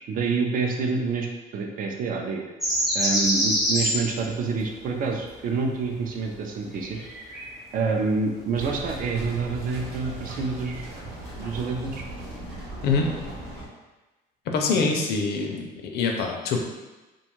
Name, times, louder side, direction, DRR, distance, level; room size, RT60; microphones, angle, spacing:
voice 1, 0.1-1.3 1.5-2.4 2.9-7.0 7.7-10.9 11.4-12.0 14.7-14.9, right 4 dB, 55° right, 2 dB, 0.5 m, -27 dB
sound 1, 2.6-4.1 4.7-4.8 5.1-5.4 6.0-6.3 6.7-7.6 8.5-8.6 9.3-9.8 10.2-10.3 11.5-11.6, equal, ahead, 0.7 m, -26 dB
sound 2, 8.5-13.7, right 1 dB, 80° right, 1.1 m, -38 dB
voice 2, 14.5-16.6, left 4 dB, 70° left, 2 dB, 0.5 m, -25 dB
2.5 x 2.2 x 3.0 m, 1.1 s
cardioid pair, 110°, 17 cm